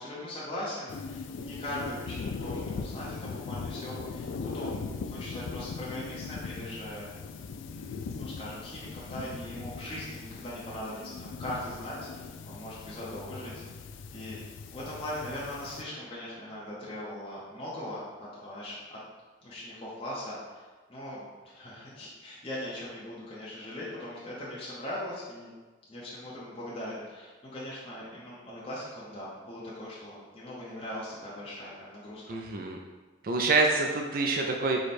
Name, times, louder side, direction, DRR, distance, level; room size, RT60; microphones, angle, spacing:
voice 1, 0.0-7.1 7.7-13.6 14.1-14.4 14.7-19.0 19.4-25.5 25.9-32.4 34.5-34.7, left 1 dB, 30° left, -8 dB, 0.9 m, -40 dB
sound 1, 0.9-15.8, left 4 dB, 75° left, 0.3 m, -39 dB
voice 2, 32.3-32.8 33.2-34.8, right 3 dB, 45° right, 1 dB, 0.4 m, -26 dB
4.8 x 2.3 x 4.2 m, 1.3 s
head